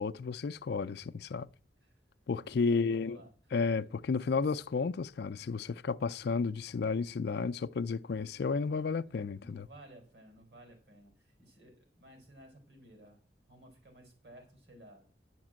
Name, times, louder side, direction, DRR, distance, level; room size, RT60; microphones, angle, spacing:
voice 1, 0.0-1.5 2.3-3.2 3.5-9.7, left 4 dB, 65° left, 0.4 m, -32 dB
voice 2, 2.7-3.3 9.4-13.2 13.5-15.1, right 1 dB, 65° right, 4.1 m, -56 dB
9.9 x 5.9 x 7.4 m
head